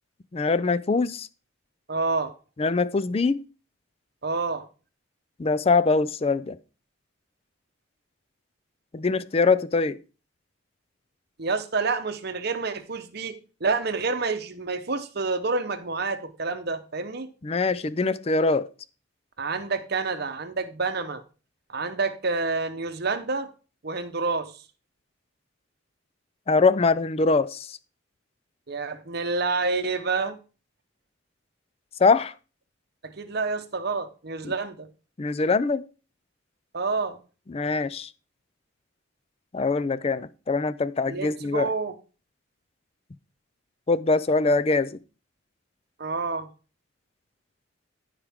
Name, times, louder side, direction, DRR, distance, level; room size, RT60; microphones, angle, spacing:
voice 1, 0.3-1.3 2.6-3.4 5.4-6.6 8.9-10.0 17.4-18.7 26.5-27.8 32.0-32.3 35.2-35.8 37.5-38.1 39.5-41.7 43.9-45.0, left 4 dB, 30° left, 0.4 m, -23 dB
voice 2, 1.9-2.3 4.2-4.7 11.4-17.3 19.4-21.2 21.7-23.5 23.8-24.6 28.7-30.4 33.0-34.9 36.7-37.2 41.1-42.0 46.0-46.5, right 4 dB, 55° right, 0.9 m, -28 dB
14.5 x 5.0 x 3.6 m
head